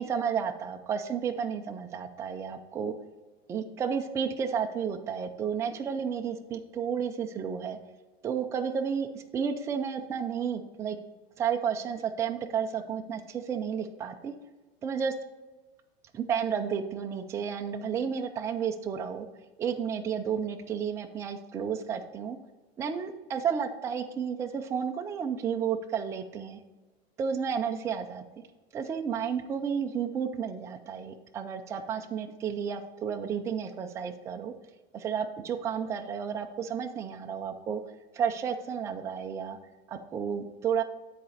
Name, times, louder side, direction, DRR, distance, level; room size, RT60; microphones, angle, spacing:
voice 1, 0.0-2.9 3.5-7.8 8.2-11.0 11.4-14.3 14.8-15.1 16.1-19.3 19.6-22.4 22.8-26.6 27.2-28.2 28.7-34.5 34.9-37.8 38.1-39.6 39.9-40.8, right 7 dB, 10° right, 4 dB, 0.3 m, -32 dB
9.4 x 4.1 x 5.0 m, 1.2 s
supercardioid pair, 145°, 30 cm